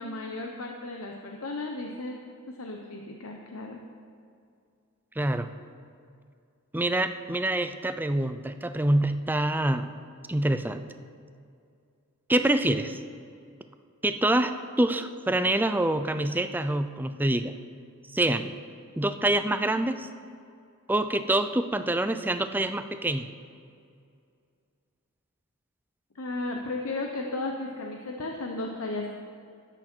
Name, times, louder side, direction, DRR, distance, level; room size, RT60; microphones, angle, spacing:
voice 1, 0.0-2.2 2.5-3.8 26.1-29.1, left 2 dB, 75° left, 2 dB, 0.9 m, -34 dB
voice 2, 5.2-5.5 6.7-9.9 10.3-10.8 12.3-13.0 14.0-17.5 18.1-18.5 19.0-20.1 20.9-23.3, right 1 dB, 10° right, 9 dB, 0.4 m, -26 dB
13.0 x 10.0 x 4.5 m, 2.3 s
head